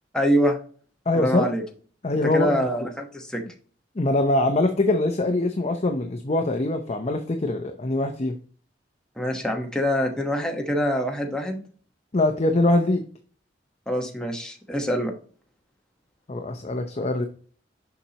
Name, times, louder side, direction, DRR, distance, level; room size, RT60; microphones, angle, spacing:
voice 1, 0.1-0.6 1.1-1.6 2.2-3.4 9.2-11.6 13.9-15.1, equal, 5° left, 1 dB, 1.1 m, -25 dB
voice 2, 1.1-1.5 2.0-2.6 4.0-8.4 12.1-13.0 16.3-17.3, left 2 dB, 35° left, 5 dB, 0.6 m, -23 dB
7.1 x 5.6 x 2.8 m, 0.42 s
head